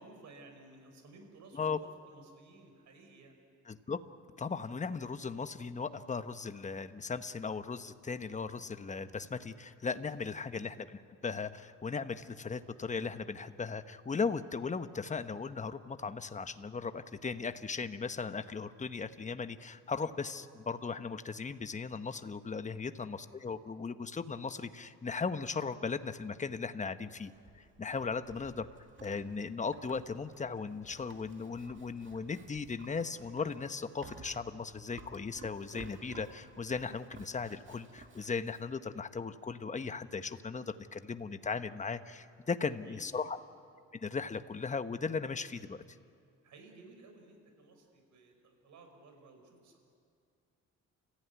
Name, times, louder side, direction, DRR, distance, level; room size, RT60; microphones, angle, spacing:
voice 1, 0.0-3.4 42.8-43.1 46.4-49.8, right 3 dB, 70° right, 4 dB, 5.2 m, -56 dB
voice 2, 3.7-4.0 4.4-28.7 29.0-43.4 43.9-45.8, left 5 dB, 25° left, 10 dB, 1.0 m, -37 dB
Livestock farm animals working animals, 27.0-38.7, right 3 dB, 40° right, 2.6 m, -55 dB
29.5 x 15.0 x 9.5 m, 2.3 s
cardioid pair, 90°, 30 cm